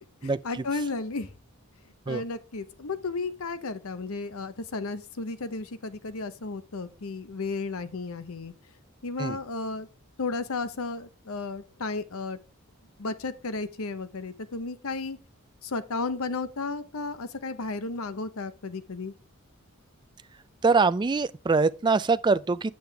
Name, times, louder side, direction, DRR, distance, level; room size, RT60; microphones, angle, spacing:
voice 1, 0.2-1.3 2.1-8.5 9.0-9.9 10.2-12.4 13.0-15.2 15.6-19.1, left 3 dB, 70° left, 0.8 m, -33 dB
voice 2, 20.6-22.7, right 4 dB, 20° right, 0.3 m, -23 dB
8.5 x 7.8 x 3.4 m
head